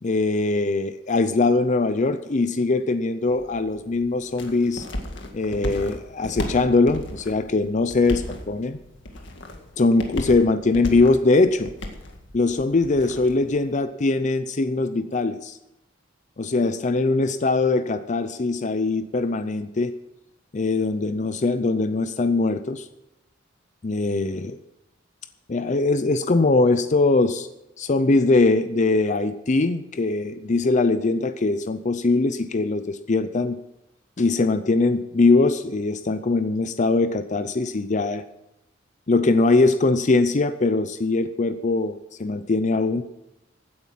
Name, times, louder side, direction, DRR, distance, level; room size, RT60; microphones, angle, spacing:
voice 1, 0.0-4.9 5.3-8.8 9.8-11.7 12.3-15.6 16.4-19.9 20.5-22.9 23.8-24.6 25.5-27.5 27.8-33.6 34.2-38.2 39.1-43.0, left 3 dB, 40° left, 11 dB, 0.5 m, -21 dB
sound 1, 3.2-13.8, left 1 dB, 65° left, 2.0 m, -36 dB
15.5 x 9.3 x 5.8 m, 0.90 s
head